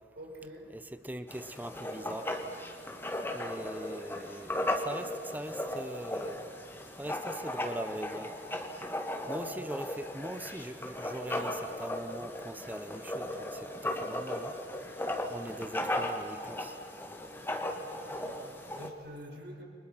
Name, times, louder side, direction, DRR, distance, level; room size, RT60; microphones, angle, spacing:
voice 1, 0.2-0.7 9.3-9.7 17.9-19.6, equal, 65° right, 0 dB, 5.8 m, -47 dB
voice 2, 0.7-2.3 3.3-6.5 7.0-8.3 9.3-14.5 15.3-16.7, right 1 dB, 10° right, 11 dB, 1.0 m, -41 dB
Writing, 1.3-18.9, left 1 dB, 15° left, 2.1 m, -37 dB
30.0 x 26.0 x 5.8 m, 2.3 s
head